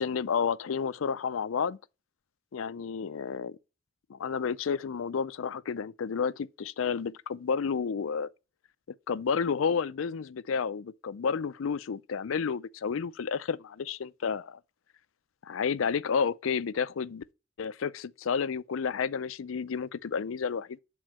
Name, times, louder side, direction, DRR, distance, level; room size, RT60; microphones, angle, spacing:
voice 1, 0.0-1.8 2.5-3.6 4.1-8.3 9.1-14.6 15.5-17.2 17.6-20.8, left 6 dB, 85° left, 0.4 m, -31 dB
6.2 x 3.8 x 6.1 m
head